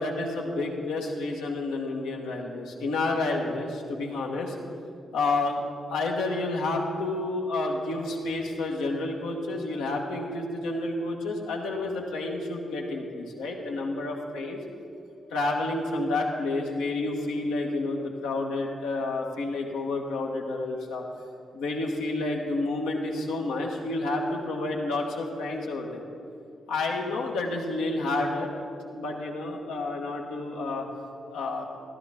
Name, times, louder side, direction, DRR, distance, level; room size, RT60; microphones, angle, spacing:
voice 1, 0.0-4.6 5.1-5.6 5.9-14.6 15.3-21.0 21.5-26.0 26.7-28.5 28.9-30.8 31.3-31.7, left 2 dB, 85° left, 0 dB, 1.3 m, -30 dB
14.0 x 12.5 x 3.6 m, 2.5 s
hypercardioid pair, 40°, 0 cm